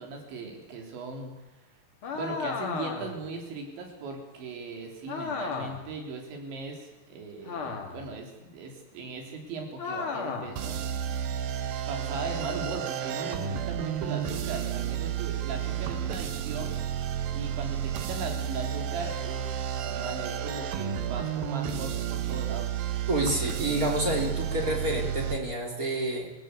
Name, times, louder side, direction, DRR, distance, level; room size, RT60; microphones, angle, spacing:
voice 1, 0.0-1.3 2.1-10.8 11.9-16.8 17.3-22.8, right 3 dB, 85° right, 2 dB, 5.7 m, -38 dB
sound 1, 2.0-3.3 5.1-5.9 7.5-8.1 9.8-10.6, left 5 dB, 40° left, 2.5 m, -34 dB
sound 2, 10.6-25.4, right 9 dB, 65° right, 2.6 m, -32 dB
voice 2, 23.1-26.3, right 1 dB, 20° right, 1 dB, 3.4 m, -28 dB
24.0 x 16.0 x 8.3 m, 1.1 s
omnidirectional pair, 5.1 m